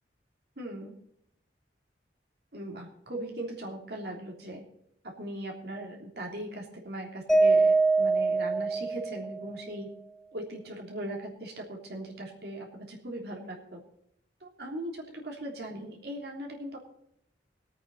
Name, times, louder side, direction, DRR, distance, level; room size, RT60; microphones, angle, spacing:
voice 1, 0.6-0.9 2.5-4.6 5.2-9.9 10.3-13.8 14.4-16.8, right 1 dB, 60° right, -1 dB, 3.3 m, -39 dB
Mallet percussion, 7.3-9.6, right 3 dB, ahead, 0.8 m, -24 dB
21.0 x 8.9 x 4.1 m, 0.73 s
head